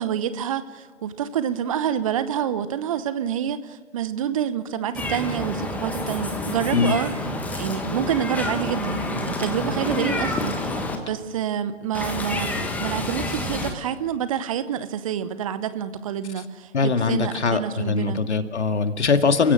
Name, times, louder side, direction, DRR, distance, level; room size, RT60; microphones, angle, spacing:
voice 1, 0.0-7.1 7.5-18.2, right 9 dB, 30° right, 13 dB, 0.9 m, -28 dB
Meow, 4.9-11.0 11.9-13.7, left 2 dB, 5° left, 1.4 m, -28 dB
voice 2, 16.7-19.5, left 4 dB, 65° left, 8 dB, 2.1 m, -21 dB
29.5 x 16.5 x 7.5 m, 1.5 s
figure-of-eight pair, 130°, 37 cm